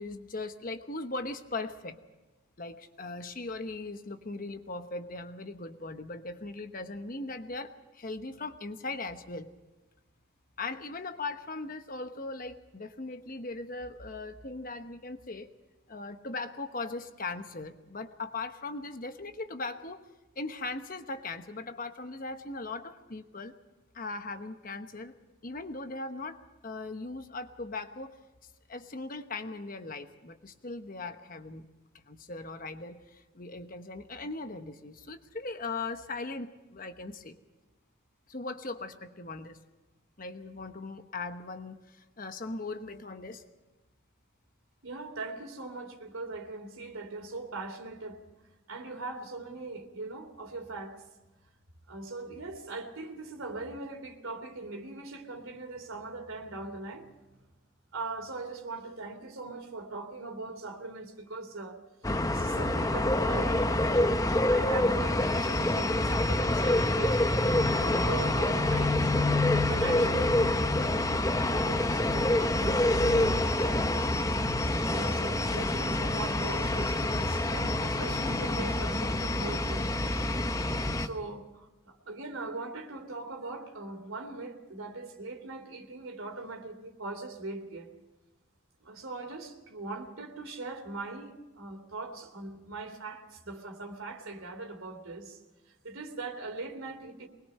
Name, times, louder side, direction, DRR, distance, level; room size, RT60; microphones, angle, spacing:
voice 1, 0.0-2.0 2.6-9.5 10.6-15.5 15.9-20.0 20.3-23.5 23.9-25.1 25.4-28.1 28.7-31.7 32.1-37.4 38.3-39.6 40.2-43.4, left 3 dB, 45° left, 8 dB, 1.1 m, -39 dB
voice 2, 44.8-48.2 48.7-51.0 51.9-57.1 57.9-61.8 62.3-64.2 64.5-67.2 67.7-69.1 69.7-70.7 71.4-74.1 74.9-80.0 81.0-87.9 88.8-95.4 95.8-97.3, right 3 dB, 85° right, 5 dB, 3.0 m, -40 dB
sound 1, 62.0-81.1, left 1 dB, 15° left, 0.8 m, -27 dB
23.5 x 21.0 x 5.6 m, 1.1 s
head